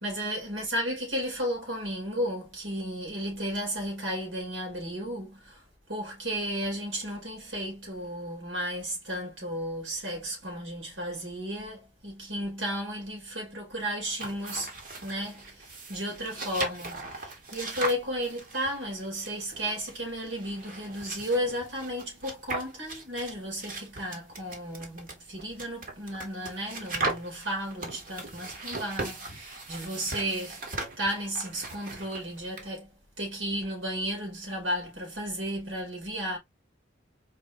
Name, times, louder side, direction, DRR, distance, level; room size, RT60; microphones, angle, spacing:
voice 1, 0.0-5.6 5.9-14.7 15.0-30.6 31.0-32.9 33.2-36.4, equal, 80° right, 2.7 m, -33 dB
sound 1, 14.1-32.7, right 2 dB, 45° right, 1.1 m, -39 dB
4.3 x 3.4 x 2.6 m
head